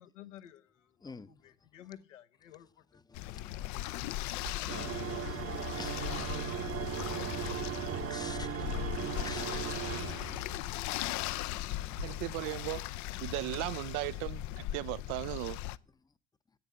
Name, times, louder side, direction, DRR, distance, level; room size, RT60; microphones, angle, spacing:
voice 1, 0.0-1.1 1.4-2.7, left 12 dB, 80° left, 1.1 m, -52 dB
voice 2, 1.0-1.5 1.8-1.9 2.9-12.5 16.0-16.1, left 4 dB, 10° left, 0.7 m, -53 dB
sound 1, 3.1-15.8, left 15 dB, 50° left, 0.6 m, -38 dB
Clock, 4.3-12.0, right 11 dB, 75° right, 2.3 m, -58 dB
sound 2, 4.7-10.7, right 10 dB, 40° right, 0.9 m, -38 dB
voice 3, 12.0-12.9 13.2-15.6, right 21 dB, 55° right, 0.5 m, -37 dB
10.5 x 8.3 x 8.6 m
hypercardioid pair, 65°, 37 cm